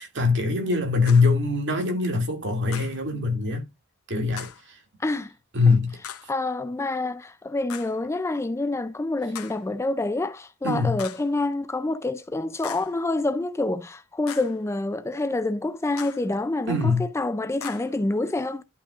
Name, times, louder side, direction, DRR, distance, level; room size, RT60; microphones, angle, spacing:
voice 1, 0.0-3.7 4.1-4.8 5.5-6.0 10.6-11.0 16.7-17.1, left 4 dB, 55° right, 2.3 m, -23 dB
sound 1, 1.1-1.4 2.7-3.0 4.4-4.7 6.0-6.4 7.7-8.0 9.3-9.7 11.0-11.3 12.6-13.0 14.3-14.6 16.0-16.3 17.6-18.0, left 8 dB, 80° left, 0.8 m, -40 dB
voice 2, 5.0-5.3 5.7-5.8 6.3-18.6, left 2 dB, 10° left, 0.3 m, -27 dB
11.0 x 5.6 x 2.4 m
head